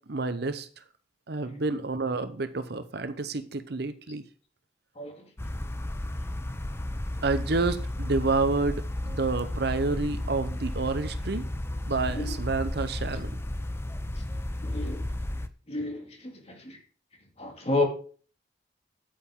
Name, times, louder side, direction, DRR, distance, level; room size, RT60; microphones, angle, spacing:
voice 1, 0.1-0.7 1.3-4.2 7.2-11.5 11.9-13.4, right 3 dB, 60° right, 11 dB, 0.8 m, -29 dB
sound 1, 5.4-15.5, left 1 dB, 15° left, 0.6 m, -33 dB
voice 2, 14.6-15.0 15.7-16.8 17.4-17.9, left 2 dB, 35° left, 3 dB, 2.2 m, -30 dB
9.1 x 8.8 x 3.8 m, 0.41 s
head